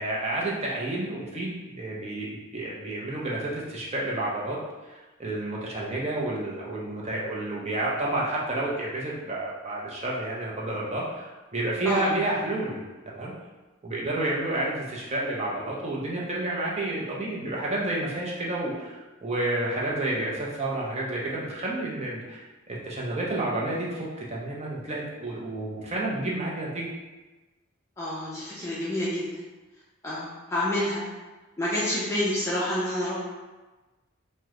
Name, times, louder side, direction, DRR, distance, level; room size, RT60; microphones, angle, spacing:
voice 1, 0.0-4.6 4.8-4.9 5.2-13.3 13.8-26.9, right 2 dB, 30° right, -4 dB, 0.6 m, -30 dB
voice 2, 28.0-29.2 30.0-31.0 31.6-33.2, left 1 dB, 15° left, -8 dB, 0.5 m, -28 dB
3.0 x 2.1 x 3.6 m, 1.2 s
head